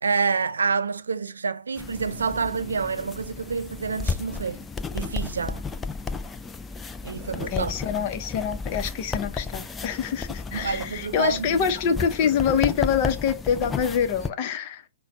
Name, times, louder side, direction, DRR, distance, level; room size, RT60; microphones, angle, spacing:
voice 1, 0.0-4.6 4.9-5.6 7.0-7.7 10.5-12.1, right 5 dB, 75° right, 0.4 m, -28 dB
sound 1, 1.8-14.3, left 4 dB, 10° left, 0.4 m, -33 dB
voice 2, 7.5-14.8, left 7 dB, 40° left, 0.8 m, -25 dB
5.7 x 2.2 x 3.9 m
figure-of-eight pair, 120°, 0 cm